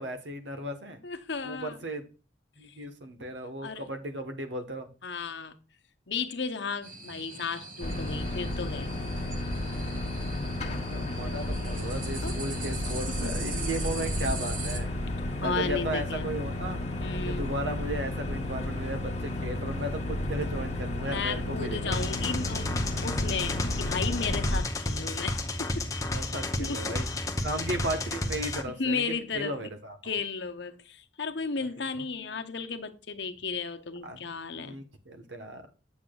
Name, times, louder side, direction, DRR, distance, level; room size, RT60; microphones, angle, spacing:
voice 1, 0.0-1.0 1.4-2.0 2.6-4.9 10.9-14.9 15.3-16.8 17.3-22.0 26.1-27.1 27.4-30.1 32.0-32.1 34.0-34.2 34.5-35.6, right 1 dB, 80° right, 1.2 m, -35 dB
voice 2, 1.0-1.8 2.7-2.8 3.2-3.3 3.6-3.9 5.0-5.5 6.1-8.9 11.2-11.5 12.2-12.4 13.1-13.4 15.4-16.3 17.0-17.5 21.0-22.7 22.9-25.9 26.1-27.2 28.8-29.7 30.0-34.8, left 5 dB, 70° left, 0.9 m, -34 dB
sound 1, 6.8-14.8, right 4 dB, 45° right, 1.2 m, -41 dB
sound 2, 7.8-24.6, left 1 dB, 35° left, 1.3 m, -32 dB
sound 3, 21.9-28.6, left 2 dB, 15° left, 0.6 m, -32 dB
8.8 x 7.1 x 2.3 m
head